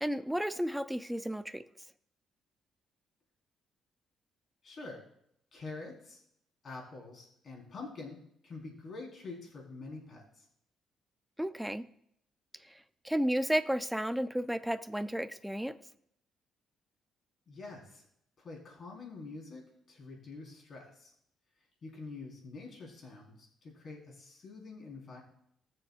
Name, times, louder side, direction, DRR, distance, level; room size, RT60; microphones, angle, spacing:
voice 1, 0.0-1.6 11.4-11.9 13.0-15.8, equal, 5° right, 11 dB, 0.5 m, -32 dB
voice 2, 4.6-5.0 5.5-6.2 6.6-10.4 17.5-18.0 18.4-19.6 19.9-21.1 21.8-25.2, left 3 dB, 50° left, -2 dB, 4.3 m, -46 dB
20.0 x 6.9 x 2.5 m, 0.73 s
cardioid pair, 90°, 0 cm